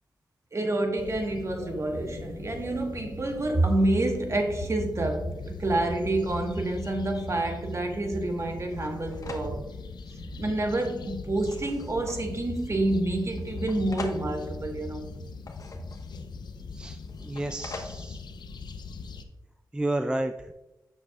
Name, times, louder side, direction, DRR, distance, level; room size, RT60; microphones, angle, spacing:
voice 1, 0.5-5.3 5.6-9.6 10.4-15.0, right 2 dB, 40° right, 3 dB, 1.3 m, -28 dB
sound 1, 1.0-19.2, left 4 dB, 70° left, 0.6 m, -41 dB
sound 2, 8.1-8.2 8.7-9.7 10.4-10.5 11.1-12.3 13.4-14.4 15.2-16.3 17.0-18.1, left 3 dB, 50° left, 1.1 m, -43 dB
voice 2, 16.8-18.2 19.7-20.3, right 1 dB, 10° right, 7 dB, 0.4 m, -31 dB
7.4 x 6.2 x 2.3 m, 0.98 s
cardioid pair, 55°, 8 cm